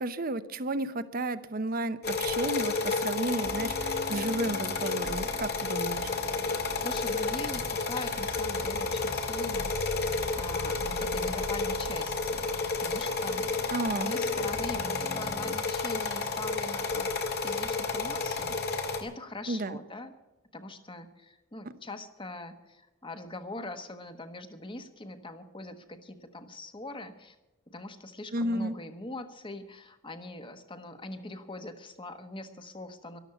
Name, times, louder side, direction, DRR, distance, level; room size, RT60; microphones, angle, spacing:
voice 1, 0.0-6.1 13.7-14.1 19.5-19.8 28.3-28.7, right 2 dB, 45° right, 13 dB, 0.8 m, -32 dB
sound 1, 2.0-19.0, left 4 dB, 50° left, 1.9 m, -31 dB
sound 2, 3.4-15.7, equal, 25° right, 1.2 m, -43 dB
voice 2, 6.5-9.9 10.4-12.5 12.8-17.1 17.4-20.1 20.5-27.4 27.7-33.2, left 2 dB, 25° left, 8 dB, 1.3 m, -42 dB
13.5 x 12.0 x 7.0 m, 1.0 s
head